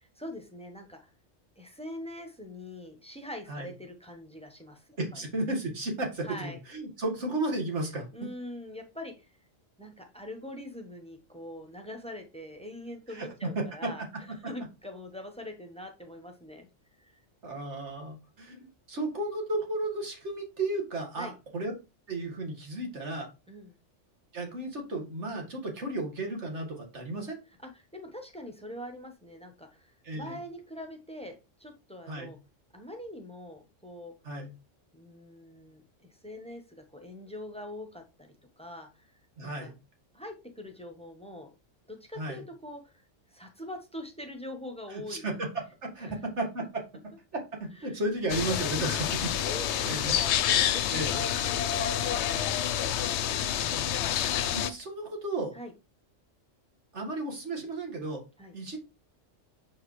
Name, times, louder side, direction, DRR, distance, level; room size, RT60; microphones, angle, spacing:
voice 1, 0.2-1.1 1.6-5.0 6.2-6.6 8.1-9.3 9.8-14.0 14.5-16.7 17.0-17.2 21.2-21.3 23.5-23.8 27.6-32.4 32.7-34.1 34.9-39.1 39.4-39.7 40.1-41.5 41.9-43.0 43.3-45.4 46.0-46.2 47.8-48.0 48.8-51.6 55.5-55.7 58.4-58.5, left 1 dB, 5° left, 4 dB, 1.0 m, -43 dB
voice 2, 5.0-8.1 13.1-13.6 17.4-21.7 22.1-23.3 24.3-27.4 30.0-30.4 32.1-32.3 34.2-34.5 39.4-39.7 42.2-42.4 44.9-45.5 45.8-46.8 47.3-49.3 49.8-50.1 50.9-51.2 53.1-54.1 54.5-55.5 56.9-58.2 58.5-58.8, right 2 dB, 65° right, 2 dB, 2.1 m, -34 dB
sound 1, 48.3-54.7, left 10 dB, 70° left, 0.8 m, -28 dB
7.0 x 4.8 x 3.2 m, 0.28 s
omnidirectional pair, 1.3 m